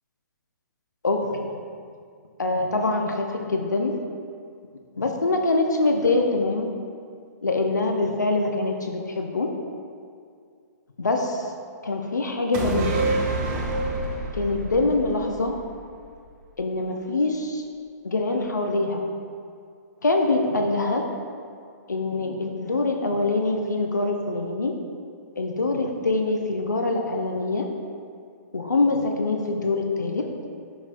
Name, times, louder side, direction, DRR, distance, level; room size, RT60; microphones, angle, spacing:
voice 1, 1.0-1.6 2.4-3.9 5.0-6.7 7.4-9.5 11.0-11.5 11.8-13.1 14.3-15.5 16.6-17.6 18.0-19.0 20.0-21.0 21.9-24.7 25.4-27.7 28.5-30.3, left 2 dB, 75° left, 3 dB, 0.7 m, -24 dB
sound 1, 12.5-16.1 16.4-16.5, right 2 dB, 30° right, 1.0 m, -28 dB
10.0 x 6.1 x 2.6 m, 2.3 s
figure-of-eight pair, 120°, 10 cm